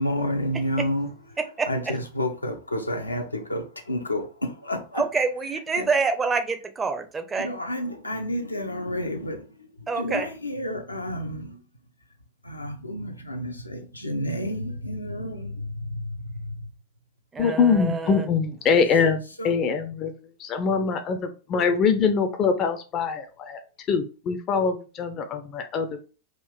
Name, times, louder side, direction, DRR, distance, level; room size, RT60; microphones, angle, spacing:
voice 1, 0.0-1.4 1.7-5.1 5.7-5.9 7.4-11.6 12.4-16.7 19.4-19.5, left 1 dB, 85° left, 0.6 m, -30 dB
voice 2, 4.9-7.5 9.9-10.3 17.3-18.3, right 4 dB, 15° right, 0.5 m, -26 dB
voice 3, 17.4-20.1 20.4-23.6 23.9-26.0, left 5 dB, 30° left, 0.4 m, -23 dB
3.8 x 2.5 x 3.4 m
figure-of-eight pair, 90°, 0 cm